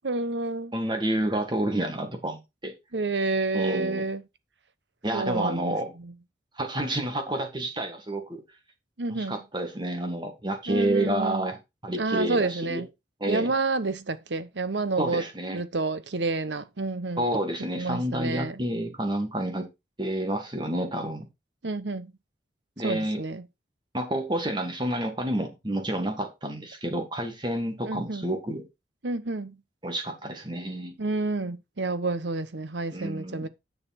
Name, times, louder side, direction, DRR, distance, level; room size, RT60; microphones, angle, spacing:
voice 1, 0.0-0.7 2.9-4.2 5.1-6.1 9.0-9.4 10.7-11.5 11.9-12.9 13.3-15.2 15.5-17.2 17.7-18.6 21.6-22.1 22.8-23.4 27.8-28.3 29.0-29.6 31.0-33.5, right 3 dB, 80° right, 1.1 m, -29 dB
voice 2, 0.7-2.7 3.5-4.0 5.0-5.9 6.6-8.4 9.1-12.8 13.2-13.5 15.0-15.6 17.2-19.7 20.0-21.3 22.8-23.2 23.9-28.6 29.8-30.9 32.9-33.5, right 1 dB, 25° right, 1.9 m, -29 dB
10.0 x 6.7 x 4.3 m
head